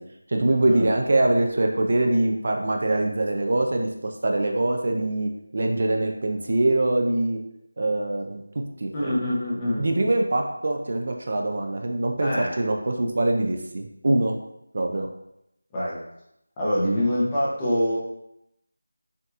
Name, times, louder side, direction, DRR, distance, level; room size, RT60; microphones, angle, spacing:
voice 1, 0.3-7.4 7.8-8.4 8.8-9.2 9.8-14.4 14.7-15.1, right 2 dB, 40° right, 3 dB, 0.4 m, -23 dB
voice 2, 8.9-9.9 12.2-12.6 15.7-16.0 16.6-18.0, equal, 10° left, -9 dB, 0.7 m, -25 dB
5.7 x 2.7 x 2.4 m, 0.82 s
figure-of-eight pair, 175°, 0 cm